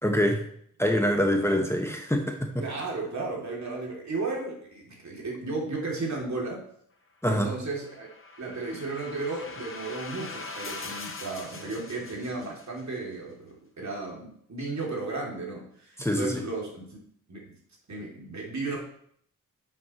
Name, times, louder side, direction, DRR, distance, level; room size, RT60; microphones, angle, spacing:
voice 1, 0.0-0.5 0.8-2.5 7.2-7.5 16.0-16.4, equal, 10° left, 2 dB, 1.2 m, -25 dB
voice 2, 2.6-6.6 7.3-8.1 8.4-17.0 17.3-17.5 17.9-18.8, right 3 dB, 55° right, -2 dB, 3.1 m, -34 dB
sound 1, 7.6-12.8, left 3 dB, 40° left, 1.4 m, -42 dB
10.0 x 7.6 x 3.2 m, 0.65 s
cardioid pair, 70°, 33 cm